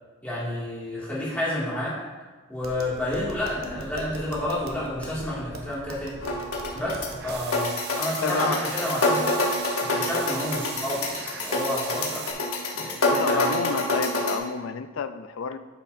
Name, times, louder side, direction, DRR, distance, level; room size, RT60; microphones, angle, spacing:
voice 1, 0.2-2.0 2.5-6.1 6.7-9.5 9.8-12.3 12.7-13.6, left 1 dB, 5° left, -8 dB, 2.0 m, -30 dB
Tap, 2.5-7.5, right 1 dB, 75° right, 0.9 m, -41 dB
sound 1, 6.2-14.4, left 2 dB, 80° left, 1.1 m, -27 dB
sound 2, 7.2-12.3, right 6 dB, 50° right, 0.6 m, -39 dB
voice 2, 8.2-8.6 13.2-15.6, left 5 dB, 65° left, 11 dB, 0.4 m, -29 dB
10.5 x 5.7 x 2.6 m, 1.3 s
head